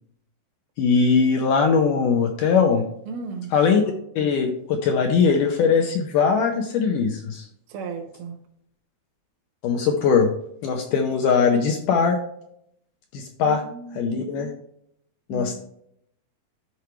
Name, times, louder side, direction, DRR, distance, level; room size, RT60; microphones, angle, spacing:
voice 1, 0.8-2.8 3.5-3.8 4.2-7.4 9.6-10.3 10.6-12.2 13.1-13.6 14.0-14.5 15.3-15.6, left 5 dB, 75° left, 3 dB, 2.0 m, -20 dB
voice 2, 3.1-3.5 7.7-8.4 13.4-14.3 15.3-15.6, right 4 dB, 75° right, 1 dB, 2.8 m, -35 dB
12.5 x 4.7 x 3.1 m, 0.73 s
omnidirectional pair, 4.5 m